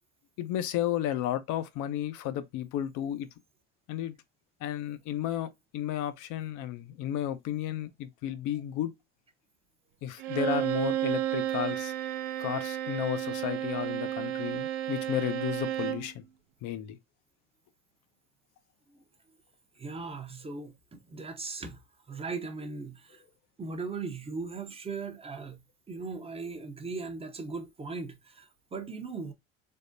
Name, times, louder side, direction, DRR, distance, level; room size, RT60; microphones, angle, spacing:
voice 1, 0.4-3.3 3.9-4.1 4.6-8.9 10.0-11.9 12.4-16.2 16.6-17.0, left 12 dB, 60° left, 0.6 m, -33 dB
Bowed string instrument, 10.2-16.1, right 12 dB, 75° right, 0.5 m, -32 dB
voice 2, 19.8-21.8 22.1-23.2 23.6-25.6 25.9-29.3, right 4 dB, 15° right, 0.7 m, -38 dB
3.5 x 2.1 x 2.5 m
supercardioid pair, 90°, 35 cm